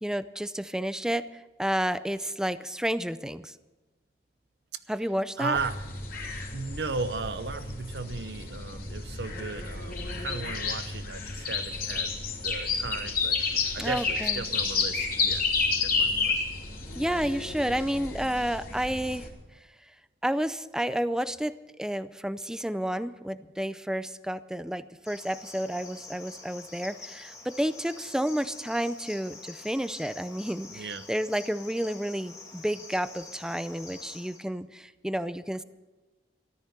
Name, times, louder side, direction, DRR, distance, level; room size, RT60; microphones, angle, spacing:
voice 1, 0.0-1.3 1.6-3.5 4.9-5.6 13.8-14.4 17.0-19.3 20.2-35.6, equal, 5° right, 14 dB, 0.5 m, -31 dB
voice 2, 5.4-5.8 6.5-12.1 12.4-13.4 13.7-15.4 15.8-16.4 30.7-31.1, right 4 dB, 70° right, 12 dB, 0.8 m, -35 dB
sound 1, 5.5-19.3, left 4 dB, 55° left, 3.1 m, -31 dB
Cricket, 25.0-34.4, left 3 dB, 20° left, 1.9 m, -47 dB
14.0 x 13.0 x 6.7 m, 1.2 s
head